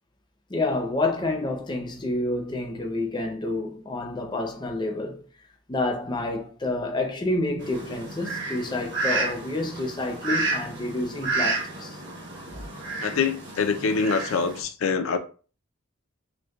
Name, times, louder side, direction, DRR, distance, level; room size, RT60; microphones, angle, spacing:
voice 1, 0.5-5.2 5.7-12.0, left 2 dB, 20° left, 0.5 m, -29 dB
Fowl, 7.6-14.6, right 3 dB, 50° right, 1.2 m, -31 dB
voice 2, 13.0-15.2, left 5 dB, 70° left, 0.4 m, -25 dB
6.3 x 2.2 x 2.3 m
head